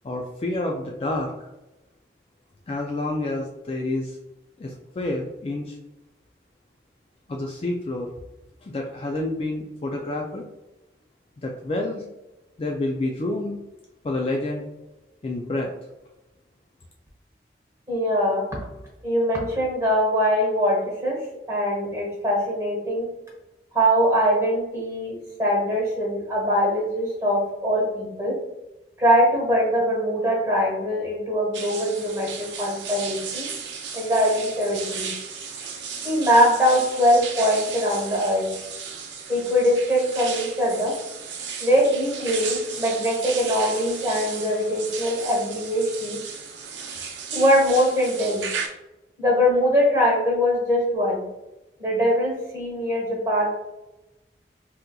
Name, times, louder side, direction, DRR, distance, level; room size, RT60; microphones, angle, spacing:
voice 1, 0.0-1.3 2.7-4.2 4.6-5.8 7.3-8.1 8.6-10.4 11.4-12.0 12.6-13.6 14.0-14.6 15.2-15.7, left 2 dB, 30° left, 0 dB, 0.3 m, -28 dB
voice 2, 17.9-18.5 19.0-23.1 23.7-28.4 29.0-33.5 33.9-35.1 36.0-38.5 39.3-41.0 41.6-46.2 47.3-48.5 49.2-51.2 51.8-53.5, equal, 15° right, -3 dB, 1.2 m, -22 dB
sound 1, 31.5-48.7, right 6 dB, 85° right, 0.6 m, -35 dB
3.6 x 2.9 x 2.3 m, 0.96 s
head